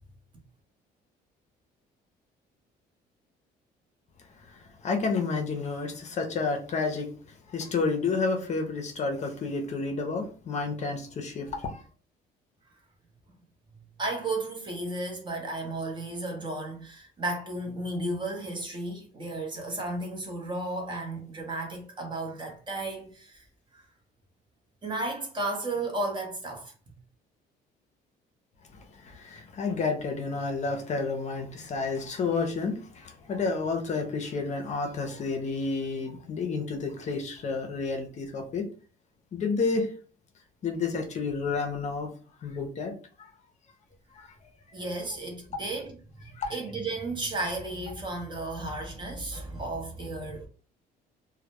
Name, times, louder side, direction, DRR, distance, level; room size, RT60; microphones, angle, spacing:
voice 1, 4.8-7.1 7.5-11.8 29.0-38.7 39.3-39.9 40.6-42.1 42.4-42.9 43.2-43.3 44.2-44.3 46.4-46.6, left 4 dB, 45° left, 0.5 m, -30 dB
voice 2, 14.0-23.4 23.7-23.8 24.8-26.7 44.7-46.0 46.5-50.5, right 2 dB, 30° right, 0.8 m, -33 dB
2.1 x 2.0 x 2.8 m
cardioid pair, 110°, 17 cm